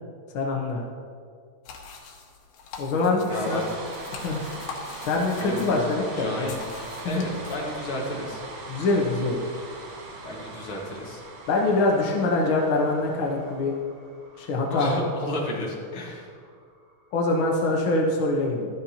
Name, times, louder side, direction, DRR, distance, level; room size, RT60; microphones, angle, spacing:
voice 1, 0.3-0.8 2.8-3.6 4.1-4.5 5.0-6.5 7.0-7.2 8.7-9.4 11.5-13.7 14.4-15.0 17.1-18.7, left 2 dB, 70° left, -1 dB, 1.2 m, -24 dB
sound 1, 1.7-7.6, left 5 dB, 85° left, 2.9 m, -43 dB
sound 2, 3.2-17.3, right 2 dB, 50° right, 1.7 m, -41 dB
voice 2, 3.3-3.7 5.4-5.8 6.2-8.4 10.2-11.2 14.7-16.3, left 1 dB, 45° left, -2 dB, 2.2 m, -32 dB
13.0 x 12.5 x 2.9 m, 2.1 s
omnidirectional pair, 3.9 m